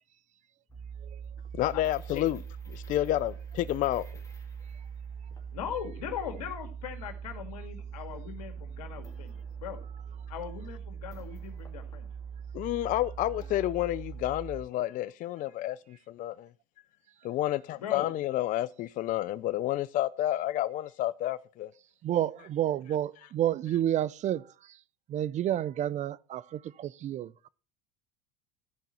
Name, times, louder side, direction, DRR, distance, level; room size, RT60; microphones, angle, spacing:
sound 1, 0.7-14.6, right 7 dB, 15° left, 2.3 m, -42 dB
voice 1, 1.5-2.4 2.7-4.1 12.5-16.5 17.2-21.7, left 14 dB, 45° left, 0.4 m, -30 dB
voice 2, 5.5-9.3 9.6-9.8 10.3-12.1 17.8-18.1, left 9 dB, 90° left, 1.9 m, -39 dB
voice 3, 22.0-24.4 25.1-27.5, right 11 dB, 40° right, 0.4 m, -30 dB
14.0 x 5.3 x 4.3 m
supercardioid pair, 100°, 20 cm